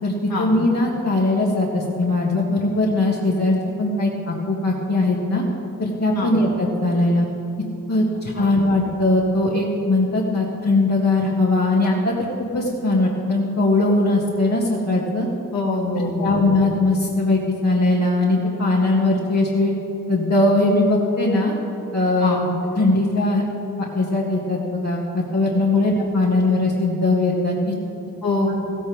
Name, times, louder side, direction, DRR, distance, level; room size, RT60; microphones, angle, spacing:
voice 1, 0.0-5.4 5.8-7.3 7.9-12.3 12.5-15.3 16.2-19.7 20.1-21.5 21.9-22.4 22.8-23.4 23.9-27.7, left 2 dB, 50° left, -5 dB, 2.3 m, -20 dB
voice 2, 15.5-16.4 22.2-22.4 28.2-28.6, left 3 dB, 80° left, -3 dB, 2.3 m, -24 dB
16.0 x 16.0 x 3.7 m, 2.9 s
cardioid pair, 45°, 35 cm